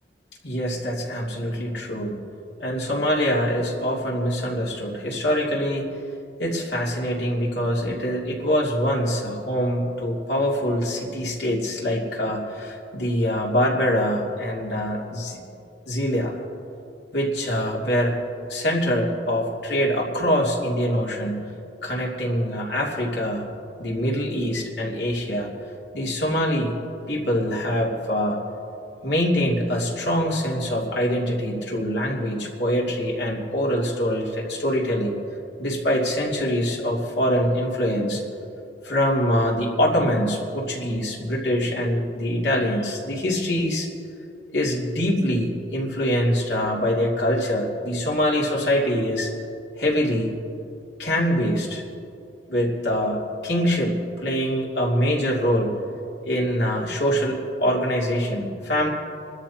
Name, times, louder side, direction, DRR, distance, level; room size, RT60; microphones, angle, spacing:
voice 1, 0.4-2.2 2.6-5.9 6.4-15.4 15.9-16.4 17.1-18.2 18.5-21.5 21.8-23.5 23.8-25.5 25.9-26.8 27.1-28.4 29.0-35.2 35.6-38.2 38.8-43.9 44.5-49.3 49.8-50.3 51.0-51.8 52.5-55.8 56.2-58.9, equal, 75° left, -3 dB, 2.7 m, -24 dB
29.0 x 13.0 x 2.9 m, 2.7 s
head